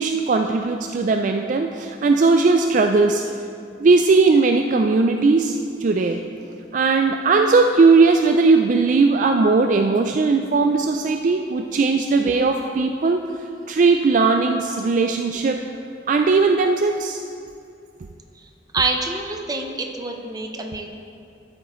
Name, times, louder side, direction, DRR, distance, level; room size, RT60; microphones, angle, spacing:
voice 1, 0.0-3.2 3.8-6.2 6.7-13.2 13.7-15.6 16.1-17.2, right 4 dB, 45° right, 5 dB, 0.3 m, -18 dB
voice 2, 18.7-20.9, right 3 dB, 20° right, 4 dB, 0.7 m, -26 dB
12.5 x 8.5 x 3.1 m, 2.5 s
head